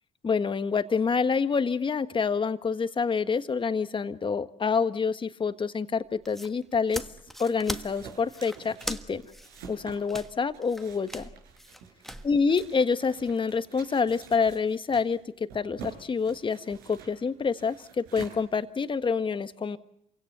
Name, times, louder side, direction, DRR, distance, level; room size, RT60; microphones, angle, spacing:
voice 1, 0.2-7.0 7.4-9.2 9.7-11.3 12.2-15.2 15.5-19.8, left 5 dB, 30° left, 11 dB, 1.5 m, -27 dB
sound 1, 6.1-12.7, equal, ahead, 1.5 m, -40 dB
sound 2, 6.6-19.1, right 6 dB, 80° right, 5.8 m, -49 dB
28.0 x 17.0 x 8.2 m, 0.76 s
hypercardioid pair, 70°, 17 cm